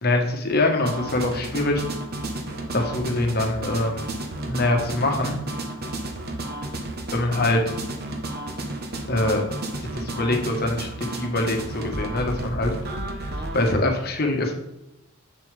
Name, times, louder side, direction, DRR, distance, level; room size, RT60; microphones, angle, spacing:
voice 1, 0.0-1.8 2.7-4.1 4.5-5.4 7.1-7.6 9.1-9.4 9.9-12.7 13.5-14.5, left 2 dB, 45° left, 3 dB, 1.2 m, -24 dB
sound 1, 0.8-13.8, right 1 dB, 45° right, 1.0 m, -32 dB
7.5 x 7.1 x 3.4 m, 0.90 s
head